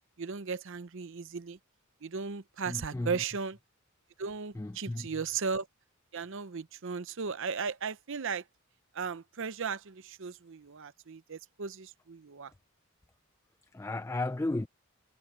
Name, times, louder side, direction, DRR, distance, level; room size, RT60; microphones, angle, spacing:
voice 1, 0.2-1.6 2.0-3.6 4.2-5.7 6.1-8.4 8.9-12.5, right 5 dB, 60° right, 0.7 m, -36 dB
voice 2, 2.7-3.2 4.5-5.1 13.7-14.7, left 2 dB, 10° left, 0.3 m, -34 dB
head